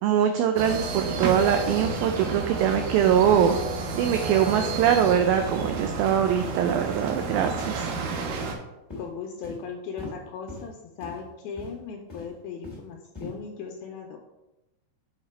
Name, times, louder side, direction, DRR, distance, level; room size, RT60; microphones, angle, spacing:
voice 1, 0.0-3.6 3.9-7.9, right 9 dB, 90° right, 6 dB, 2.1 m, -23 dB
sound 1, 0.6-8.5, right 4 dB, 70° right, 2.5 m, -31 dB
sound 2, 1.0-1.2 1.6-1.8 2.2-2.4 2.7-2.8 3.2-3.5 3.9-4.0 4.4-4.6 5.0-5.2 5.5-5.7 6.1-6.3 6.6-6.8 7.2-7.4 7.8-7.9 8.3-8.6 8.9-9.0 9.4-9.6 10.0-10.1 10.5-10.7 11.0-11.2 11.6-11.8 12.1-12.8 13.1-13.3, left 3 dB, 10° left, 1.1 m, -40 dB
voice 2, 9.0-14.2, left 6 dB, 80° left, 1 dB, 2.3 m, -38 dB
7.4 x 5.0 x 4.3 m, 0.95 s
omnidirectional pair, 4.8 m